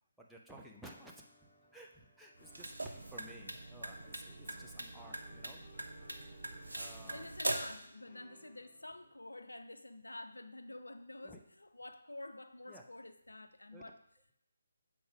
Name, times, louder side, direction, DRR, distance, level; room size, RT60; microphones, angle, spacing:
voice 1, 0.2-5.6 6.3-7.3 11.2-11.4 12.7-12.8 13.7-13.8, right 1 dB, ahead, -2 dB, 0.6 m, -55 dB
sound 1, 0.8-9.1, left 1 dB, 30° left, 2.3 m, -62 dB
sound 2, 2.4-7.8, right 2 dB, 75° right, 0.8 m, -42 dB
voice 2, 7.0-14.0, left 2 dB, 75° left, 9 dB, 0.5 m, -49 dB
7.0 x 4.7 x 3.5 m, 0.74 s
figure-of-eight pair, 145°, 0 cm